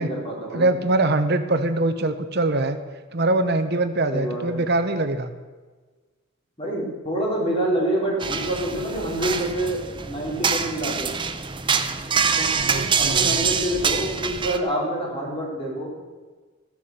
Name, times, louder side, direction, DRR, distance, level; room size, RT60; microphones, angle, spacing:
voice 1, 0.0-0.7 4.1-4.6 6.6-9.8 10.1-11.1 12.4-15.9, right 1 dB, 25° left, -3 dB, 3.9 m, -27 dB
voice 2, 0.5-2.8 3.1-5.3 12.6-13.4, right 2 dB, 50° right, 9 dB, 1.0 m, -23 dB
sound 1, 8.2-14.6, right 6 dB, 25° right, 0.7 m, -25 dB
14.5 x 7.4 x 7.6 m, 1.4 s
head